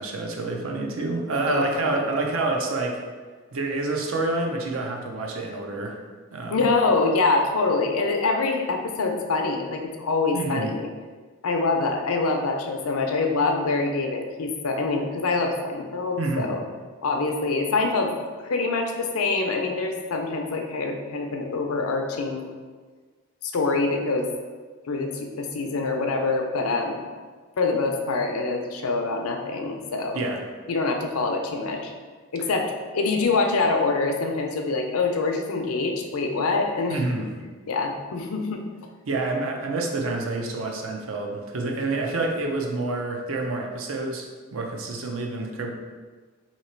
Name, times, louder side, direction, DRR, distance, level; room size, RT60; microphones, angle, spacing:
voice 1, 0.0-3.0 3.5-6.0 6.3-6.7 10.3-10.7 16.2-16.5 30.1-30.4 36.9-37.3 39.1-45.7, right 2 dB, 70° right, 1 dB, 0.6 m, -28 dB
voice 2, 1.5-2.0 6.5-10.9 11.4-16.6 17.0-18.1 18.4-22.5 23.4-24.3 24.9-27.0 27.6-30.2 30.7-31.9 32.3-37.0 37.7-38.7, left 3 dB, 85° left, 3 dB, 0.5 m, -25 dB
2.9 x 2.8 x 4.4 m, 1.5 s
head